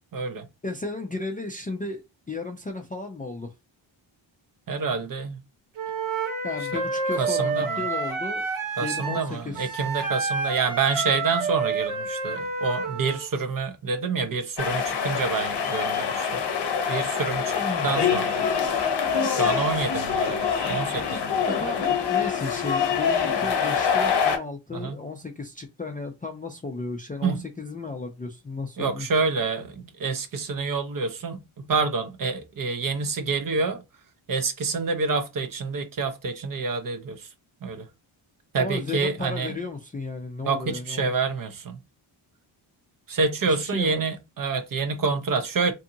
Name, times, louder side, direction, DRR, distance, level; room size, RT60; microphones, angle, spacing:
voice 1, 0.1-0.5 4.7-5.4 6.7-6.8 7.2-7.8 8.8-16.3 16.9-17.5 17.8-18.5 19.3-21.4 24.7-25.0 27.2-27.4 28.8-33.8 34.3-37.3 37.6-37.9 38.5-39.5 40.4-41.8 43.1-45.7, right 4 dB, 45° right, 0.6 m, -27 dB
voice 2, 0.6-2.0 2.3-3.5 6.4-8.5 8.8-9.8 17.5-17.9 21.5-29.1 38.6-41.1 43.5-44.0, left 3 dB, 20° left, 0.3 m, -34 dB
Wind instrument woodwind instrument, 5.8-13.2, right 4 dB, 75° right, 0.8 m, -29 dB
sound 1, 14.6-24.4, left 7 dB, 55° left, 0.7 m, -25 dB
2.7 x 2.6 x 2.6 m
cardioid pair, 95°, 49 cm